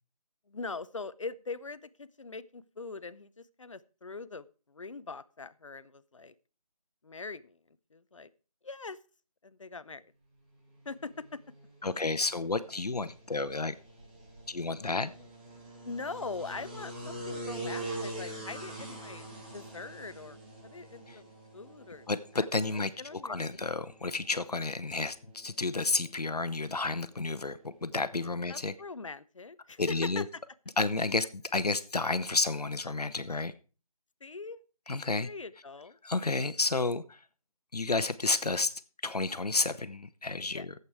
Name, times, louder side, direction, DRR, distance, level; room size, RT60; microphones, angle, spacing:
voice 1, 0.5-6.3 7.0-8.3 8.6-9.0 9.4-10.1 10.8-11.4 15.8-19.3 19.5-22.1 22.3-23.6 28.5-30.3 34.2-34.6 35.2-36.0 40.5-40.7, left 4 dB, 55° left, 16 dB, 0.7 m, -42 dB
sound 1, 10.8-28.8, right 1 dB, 15° right, 1.6 m, -45 dB
voice 2, 11.8-13.7 14.5-15.1 21.1-21.2 22.1-22.9 23.2-28.7 29.8-30.2 30.8-33.5 34.9-35.3 36.0-37.2 37.7-38.7 39.0-40.7, left 3 dB, 90° left, 13 dB, 1.0 m, -31 dB
12.5 x 8.2 x 4.7 m, 0.37 s
figure-of-eight pair, 170°, 19 cm